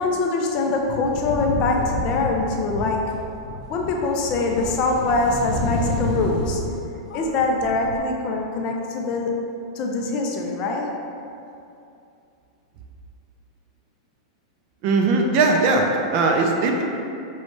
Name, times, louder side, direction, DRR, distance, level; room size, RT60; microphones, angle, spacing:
voice 1, 0.0-3.1 3.5-6.8 7.1-9.3 9.8-10.9, left 3 dB, 30° left, 1 dB, 0.4 m, -23 dB
sound 1, 0.9-6.8 7.1-8.0, left 1 dB, 65° left, 0.7 m, -30 dB
voice 2, 14.8-16.8, right 3 dB, 35° right, 2 dB, 0.4 m, -19 dB
5.4 x 3.1 x 3.1 m, 2.6 s
supercardioid pair, 165°, 3 cm